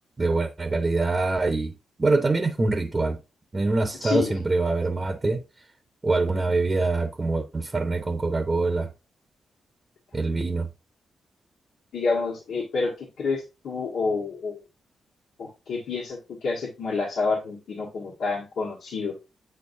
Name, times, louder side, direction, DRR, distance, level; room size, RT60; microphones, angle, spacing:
voice 1, 0.2-1.7 2.0-3.2 3.5-5.4 6.0-8.9 10.1-10.7, right 3 dB, 25° right, 0.8 m, -24 dB
voice 2, 4.0-4.4 11.9-14.6 15.4-19.1, left 4 dB, 80° left, 1.6 m, -28 dB
7.9 x 4.5 x 2.7 m
cardioid pair, 95°, 0 cm